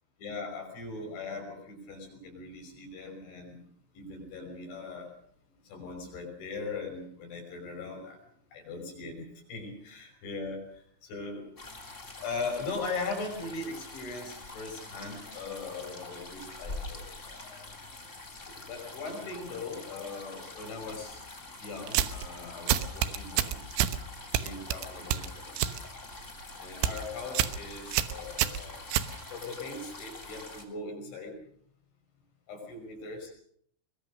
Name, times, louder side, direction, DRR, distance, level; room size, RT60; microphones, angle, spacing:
voice 1, 0.2-3.6 3.9-5.1 5.6-8.2 8.5-11.5 12.2-17.7 18.5-21.2 21.6-23.6 24.4-25.7 26.6-28.9 29.3-31.4 32.5-33.3, left 3 dB, 75° left, 1 dB, 8.4 m, -40 dB
sound 1, 11.6-30.6, left 2 dB, 20° left, 2.6 m, -45 dB
sound 2, 21.9-22.3 22.7-24.0 24.3-25.8 26.1-26.4 26.7-27.0 27.4-27.6 27.9-29.5, right 11 dB, 80° right, 3.5 m, -28 dB
22.5 x 22.0 x 6.5 m, 0.63 s
omnidirectional pair, 5.4 m